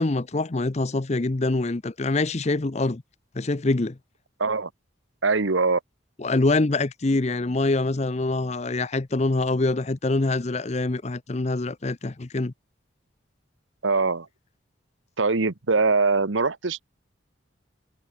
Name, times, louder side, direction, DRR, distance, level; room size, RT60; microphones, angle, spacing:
voice 1, 0.0-3.0 3.3-4.0 6.2-12.5, left 2 dB, 35° left, 0.6 m, -25 dB
voice 2, 4.4-4.7 5.2-5.8 13.8-14.3 15.2-16.8, right 4 dB, 80° right, 1.1 m, -22 dB
head